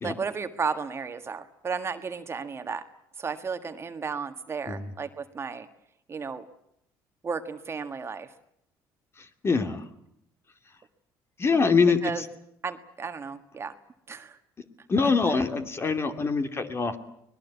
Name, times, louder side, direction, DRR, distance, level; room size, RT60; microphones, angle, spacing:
voice 1, 0.0-2.8 3.2-5.7 6.1-6.5 7.2-8.3 12.0-12.2 12.6-13.7 14.1-14.4, right 5 dB, 30° right, 8 dB, 1.7 m, -33 dB
voice 2, 9.2-9.8 11.4-12.0 14.9-17.0, left 4 dB, 30° left, 8 dB, 2.5 m, -24 dB
24.5 x 20.5 x 8.3 m, 0.74 s
cardioid pair, 105°, 8 cm